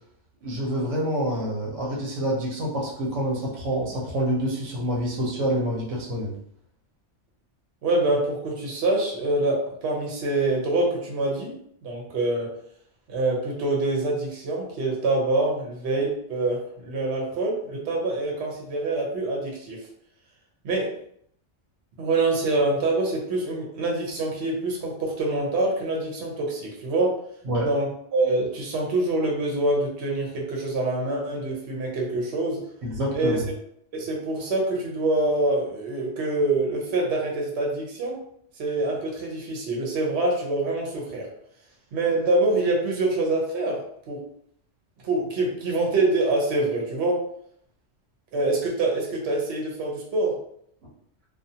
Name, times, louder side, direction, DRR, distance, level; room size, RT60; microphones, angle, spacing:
voice 1, 0.4-6.3 27.4-27.7 32.8-33.4, equal, 90° right, -3 dB, 1.1 m, -27 dB
voice 2, 7.8-11.5 11.8-12.5 13.1-19.8 20.6-20.9 22.0-27.1 27.6-32.6 33.1-33.4 33.9-38.2 38.6-41.3 41.9-43.8 44.1-44.2 45.0-47.2 48.3-50.4, right 2 dB, 65° right, -2 dB, 1.0 m, -25 dB
2.5 x 2.4 x 2.7 m, 0.69 s
omnidirectional pair, 1.2 m